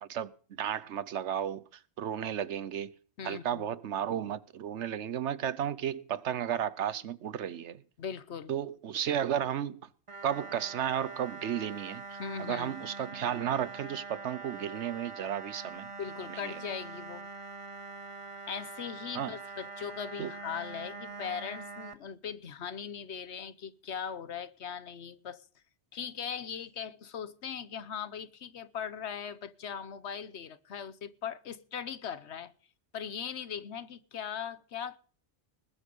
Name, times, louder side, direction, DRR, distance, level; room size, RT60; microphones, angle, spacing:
voice 1, 0.0-1.6 2.0-2.9 3.2-7.8 8.5-9.8 10.2-15.9 16.3-16.6 19.1-19.3 20.2-20.3, right 9 dB, 80° right, 1.1 m, -33 dB
voice 2, 3.2-3.7 8.0-8.5 12.2-12.8 16.0-17.3 18.5-25.4 25.9-32.5 32.9-35.0, left 7 dB, 70° left, 1.2 m, -39 dB
sound 1, 10.1-21.9, right 3 dB, 30° right, 1.0 m, -44 dB
20.0 x 8.1 x 5.4 m
omnidirectional pair, 1.2 m